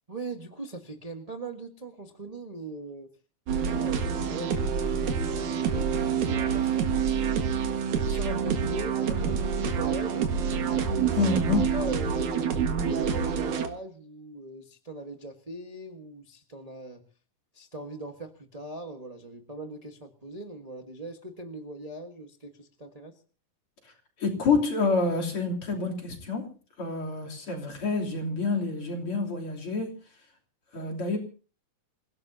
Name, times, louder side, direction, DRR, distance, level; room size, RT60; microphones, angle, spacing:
voice 1, 0.1-3.1 3.5-7.5 8.0-10.2 10.6-11.4 11.7-12.5 12.8-17.0 17.5-23.2, right 2 dB, 40° right, 0.5 m, -40 dB
sound 1, 3.5-13.7, right 7 dB, 85° right, 3.2 m, -27 dB
voice 2, 11.2-11.7 23.8-23.9 24.2-26.5 26.8-30.0 30.7-31.2, left 3 dB, 45° left, 4.0 m, -28 dB
27.5 x 17.0 x 2.8 m
omnidirectional pair, 3.4 m